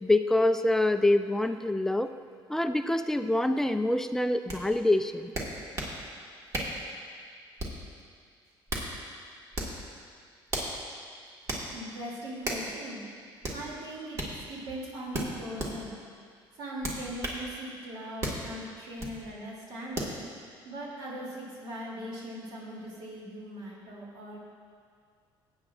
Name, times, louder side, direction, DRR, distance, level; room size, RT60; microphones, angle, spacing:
voice 1, 0.0-2.1 2.5-5.3, left 1 dB, 5° left, 8 dB, 0.3 m, -25 dB
sound 1, 4.5-4.6 5.3-6.0 6.5-6.8 7.6-7.9 8.5-8.9 9.5-9.8 10.5-10.7 11.5-11.7 12.4-12.7 13.4-13.6 14.1-14.3 15.1-15.7 16.8-17.4 18.2-18.4 19.0-19.2 19.9-20.2, right 1 dB, 30° right, 1.6 m, -33 dB
voice 2, 11.7-13.0 13.5-16.0 16.6-20.2 20.6-24.4, equal, 65° right, -5 dB, 2.7 m, -40 dB
19.0 x 8.8 x 2.4 m, 2.1 s
cardioid pair, 155°, 9 cm